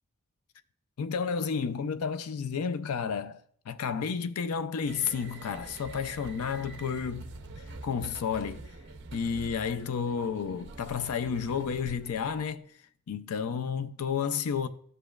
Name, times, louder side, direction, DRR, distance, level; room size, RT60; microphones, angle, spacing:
voice 1, 1.0-7.3 7.8-8.7 9.1-12.7 13.1-14.7, left 6 dB, 85° left, 0.4 m, -31 dB
sound 1, 4.8-12.5, right 2 dB, 55° right, 0.6 m, -46 dB
13.5 x 5.1 x 2.3 m
head